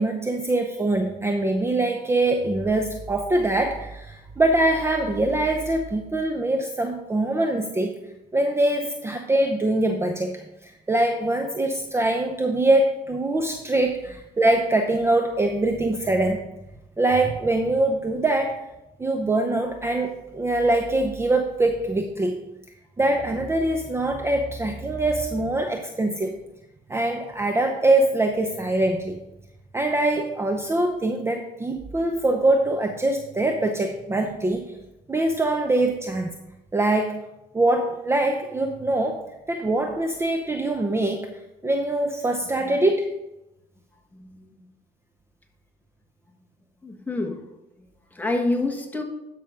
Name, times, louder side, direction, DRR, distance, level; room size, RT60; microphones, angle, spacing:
voice 1, 0.0-7.9 8.3-16.4 17.0-18.6 19.0-22.4 23.0-26.4 26.9-29.2 29.7-34.7 35.1-36.3 36.7-37.2 37.5-39.2 39.5-41.3 41.6-43.1, right 2 dB, 15° right, 4 dB, 0.7 m, -23 dB
voice 2, 44.1-44.5 46.8-47.4 48.1-49.0, left 2 dB, 10° left, 1 dB, 1.5 m, -27 dB
12.0 x 5.8 x 3.7 m, 0.96 s
cardioid pair, 110°, 17 cm